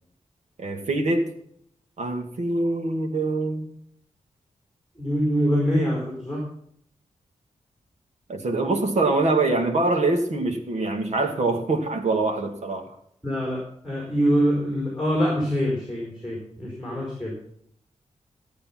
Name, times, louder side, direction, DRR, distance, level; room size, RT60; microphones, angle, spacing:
voice 1, 0.6-1.3 2.0-3.7 8.3-12.9, right 2 dB, 65° right, 4 dB, 2.2 m, -24 dB
voice 2, 5.0-6.4 13.2-17.3, equal, 5° right, -3 dB, 4.8 m, -24 dB
15.0 x 8.6 x 6.0 m, 0.67 s
wide cardioid pair, 150°, 12 cm